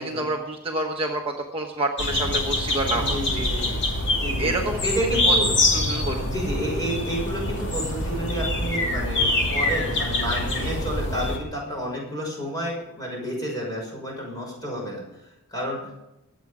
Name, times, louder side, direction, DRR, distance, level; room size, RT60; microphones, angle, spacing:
voice 1, 0.0-3.4 4.4-4.8 5.3-5.4 5.7-6.3 10.6-10.7, right 2 dB, 25° right, 1 dB, 1.2 m, -28 dB
sound 1, 2.0-11.4, left 1 dB, 55° left, 2.7 m, -25 dB
voice 2, 2.9-3.8 4.1-5.5 6.2-16.0, equal, 20° left, -2 dB, 6.1 m, -30 dB
23.0 x 8.4 x 5.0 m, 0.91 s
head